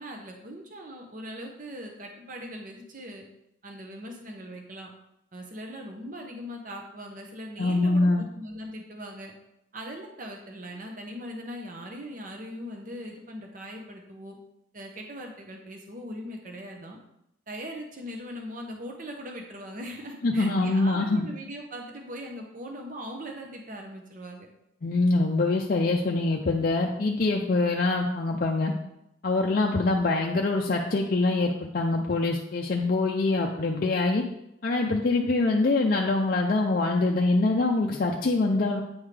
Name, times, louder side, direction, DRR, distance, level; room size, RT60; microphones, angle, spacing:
voice 1, 0.0-3.2 3.6-4.9 5.3-9.3 9.7-14.4 14.7-17.0 17.5-24.5, equal, 40° right, 2 dB, 0.8 m, -40 dB
voice 2, 7.6-8.2 20.2-21.2 24.8-28.7 29.2-34.2 34.6-38.8, left 2 dB, 45° left, 0 dB, 0.4 m, -24 dB
8.6 x 3.7 x 3.3 m, 0.81 s
head